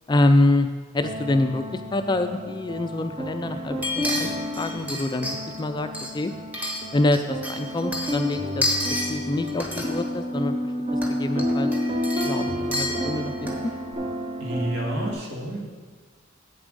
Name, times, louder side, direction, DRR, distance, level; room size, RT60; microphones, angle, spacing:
voice 1, 0.1-0.7 0.9-4.3 4.6-6.3 6.9-8.7 9.1-10.6 11.1-11.7 12.2-13.5, left 2 dB, 20° left, 8 dB, 0.3 m, -25 dB
sound 1, 1.0-15.1, equal, 25° right, 0.6 m, -30 dB
sound 2, 3.8-5.6 5.9-7.2 7.4-9.1 9.5-10.0 10.9-11.1 11.4-13.7 13.9-14.0, left 1 dB, 10° right, 1.0 m, -30 dB
voice 2, 14.4-15.7, right 1 dB, 70° right, -2 dB, 1.9 m, -29 dB
8.4 x 7.1 x 5.2 m, 1.4 s
head